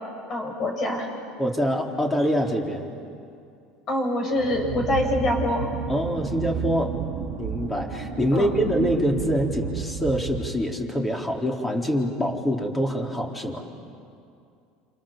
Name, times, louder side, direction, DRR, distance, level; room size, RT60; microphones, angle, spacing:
voice 1, 0.3-1.1 3.9-5.7 8.3-8.5, left 1 dB, 50° left, 1 dB, 7.9 m, -25 dB
voice 2, 1.4-2.9 5.9-6.9 7.4-13.6, equal, 15° left, 1 dB, 4.1 m, -25 dB
sound 1, 4.3-10.9, right 7 dB, 65° right, 1.6 m, -32 dB
29.0 x 27.5 x 7.5 m, 2.5 s
supercardioid pair, 95°, 0 cm